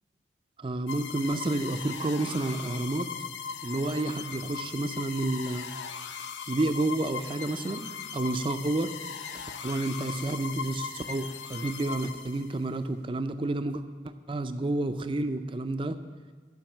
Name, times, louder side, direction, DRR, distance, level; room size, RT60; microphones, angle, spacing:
voice 1, 0.6-3.1 3.6-5.7 6.5-8.9 9.3-16.0, right 2 dB, 30° right, 10 dB, 0.5 m, -30 dB
sound 1, 0.9-12.7, left 6 dB, 90° left, 0.6 m, -39 dB
12.0 x 5.2 x 7.2 m, 1.5 s
head